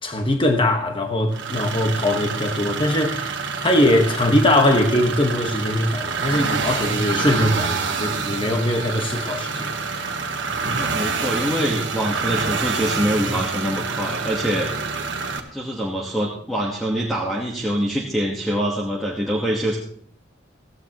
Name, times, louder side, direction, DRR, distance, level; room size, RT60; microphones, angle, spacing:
voice 1, 0.0-3.3 3.6-9.7 10.6-10.8, left 1 dB, 25° left, 1.4 m, -21 dB
sound 1, 1.3-15.4, right 4 dB, 65° right, 1.4 m, -27 dB
voice 2, 10.8-14.7 15.5-19.8, equal, ahead, 1.5 m, -24 dB
16.5 x 16.0 x 3.1 m
head